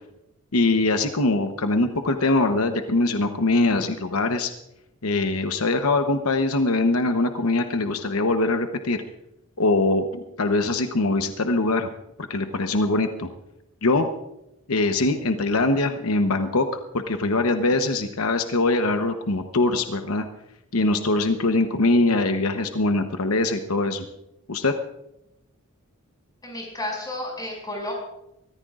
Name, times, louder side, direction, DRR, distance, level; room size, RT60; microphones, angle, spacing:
voice 1, 0.5-4.5 5.0-9.0 9.6-11.9 12.3-13.3 13.8-14.1 14.7-16.7 16.9-20.3 20.7-24.0 24.5-24.7, left 2 dB, 85° left, 7 dB, 1.0 m, -22 dB
voice 2, 26.4-27.9, left 1 dB, 20° left, -1 dB, 6.1 m, -32 dB
24.0 x 14.5 x 2.5 m, 0.86 s
head